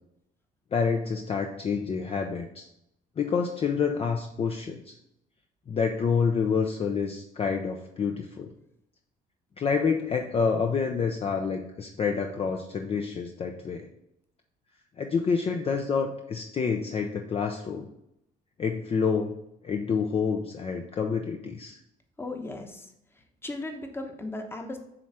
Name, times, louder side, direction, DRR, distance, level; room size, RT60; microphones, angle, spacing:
voice 1, 0.7-2.7 3.2-4.9 5.7-8.5 9.6-13.9 15.0-17.9 18.6-19.3 19.6-21.8, left 5 dB, 35° left, 3 dB, 0.6 m, -28 dB
voice 2, 22.2-24.8, left 2 dB, 15° left, 5 dB, 1.0 m, -37 dB
7.8 x 3.2 x 5.7 m, 0.81 s
cardioid pair, 110°, 17 cm